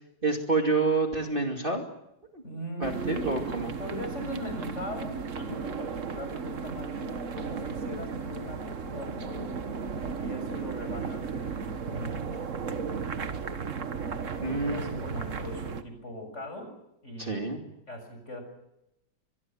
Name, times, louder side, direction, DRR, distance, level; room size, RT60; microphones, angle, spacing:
voice 1, 0.2-1.8 2.3-2.4 2.8-3.7 14.4-15.1 17.2-17.6, right 3 dB, 25° right, 3 dB, 2.6 m, -28 dB
voice 2, 2.4-3.5 3.8-9.6 10.2-12.4 12.7-13.0 14.4-16.7 17.0-17.6 17.9-18.4, equal, 35° left, 6 dB, 7.1 m, -40 dB
sound 1, 2.8-15.8, right 5 dB, 45° right, 1.6 m, -35 dB
25.0 x 21.5 x 7.5 m, 0.84 s
omnidirectional pair, 2.1 m